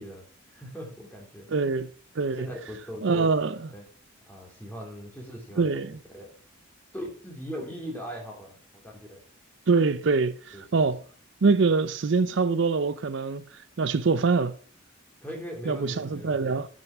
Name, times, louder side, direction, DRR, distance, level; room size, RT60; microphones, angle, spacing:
voice 1, 0.0-1.5 2.3-3.3 3.7-3.8 4.3-5.7 6.1-6.3 6.9-9.2 10.5-10.9 15.2-16.6, equal, 5° left, 3.1 m, -40 dB
voice 2, 1.5-1.9 2.2-2.5 3.0-3.6 5.6-6.0 9.7-11.0 11.4-14.5 15.7-16.7, right 4 dB, 55° right, 0.5 m, -24 dB
10.5 x 6.3 x 6.0 m
head